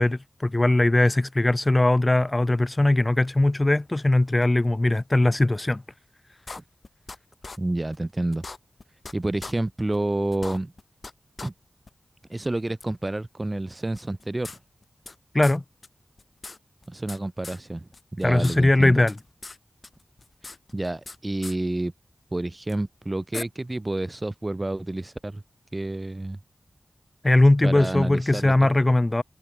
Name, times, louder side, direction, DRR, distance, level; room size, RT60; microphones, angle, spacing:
voice 1, 0.0-5.8 15.3-15.6 18.2-19.1 27.2-29.2, left 2 dB, 25° left, 2.0 m, -20 dB
sound 1, 6.5-7.2 7.4-7.6 7.9-8.0 8.3-9.1 9.4-9.5 9.9-10.0 10.3-11.1 11.4-11.5 11.9-12.0 12.8-12.9 13.9-15.1 15.4-15.6 15.8-15.9 16.2-17.2 17.4-17.6 17.9-18.6 18.8-19.6 19.8-21.2 21.4-21.6 22.7-22.8 23.3-23.4, left 3 dB, 50° left, 2.8 m, -39 dB
voice 2, 7.6-8.4 9.1-10.7 11.4-11.5 12.3-14.6 16.9-19.0 20.7-21.9 22.3-25.4 25.7-26.4 27.6-28.7, right 2 dB, 25° right, 3.9 m, -29 dB
wide cardioid pair, 80°, 0 cm